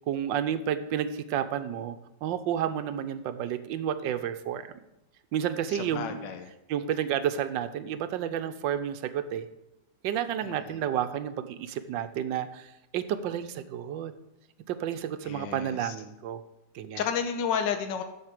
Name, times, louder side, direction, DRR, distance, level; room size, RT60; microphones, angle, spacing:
voice 1, 0.1-4.7 5.3-6.2 6.7-9.4 10.0-14.1 14.7-16.4 16.7-17.0, right 9 dB, 90° right, 11 dB, 1.4 m, -31 dB
voice 2, 5.7-6.5 10.4-10.8 15.2-16.0 17.0-18.0, left 7 dB, 80° left, 7 dB, 1.5 m, -32 dB
7.9 x 6.6 x 7.4 m, 0.91 s
omnidirectional pair, 2.0 m